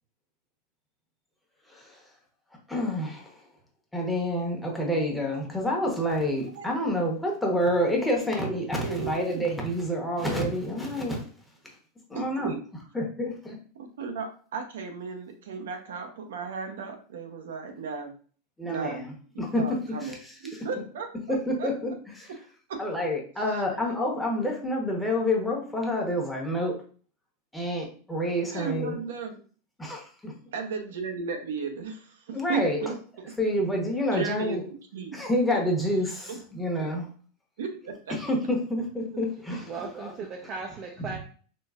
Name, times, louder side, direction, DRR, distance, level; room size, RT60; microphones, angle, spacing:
voice 1, 2.7-3.3 3.9-11.2 12.1-12.5 12.9-13.6 18.6-19.6 20.0-20.3 21.3-22.3 22.8-26.7 27.5-29.0 29.8-30.3 32.3-32.8 33.4-34.6 35.1-37.0 38.2-39.7 39.9-40.1, equal, 5° left, 1.1 m, -28 dB
voice 2, 8.8-9.4 12.1-12.6 13.8-18.1 18.6-19.0 19.3-20.2 20.4-21.7 22.7-22.8 23.5-23.8 28.5-29.4 30.5-32.9 33.3-33.4 34.1-34.6 34.9-35.2 36.3-36.4 37.6-38.1 39.5-39.6, right 5 dB, 80° right, 0.7 m, -35 dB
voice 3, 39.6-41.2, right 4 dB, 40° right, 0.5 m, -37 dB
3.8 x 2.5 x 2.4 m
hypercardioid pair, 120°, 0 cm